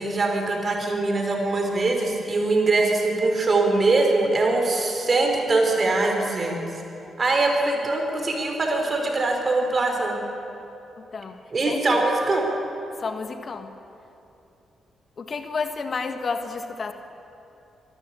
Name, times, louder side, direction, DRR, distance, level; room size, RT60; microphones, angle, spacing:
voice 1, 0.0-6.6 7.2-10.2 11.5-12.5, right 2 dB, 45° right, 2 dB, 5.0 m, -22 dB
voice 2, 11.0-11.4 11.6-12.0 13.0-13.7 15.2-16.9, left 4 dB, 50° left, 7 dB, 1.6 m, -31 dB
24.0 x 13.5 x 8.6 m, 2.8 s
hypercardioid pair, 40°, 0 cm